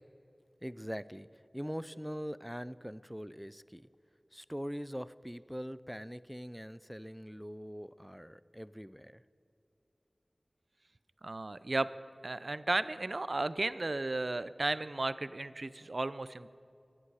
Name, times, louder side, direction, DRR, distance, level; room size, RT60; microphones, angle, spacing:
voice 1, 0.6-3.9 4.3-9.2, equal, ahead, 17 dB, 0.4 m, -42 dB
voice 2, 11.2-11.9 12.2-16.5, right 2 dB, 65° right, 15 dB, 0.5 m, -34 dB
24.0 x 11.0 x 4.8 m, 2.7 s
wide cardioid pair, 55°, 0 cm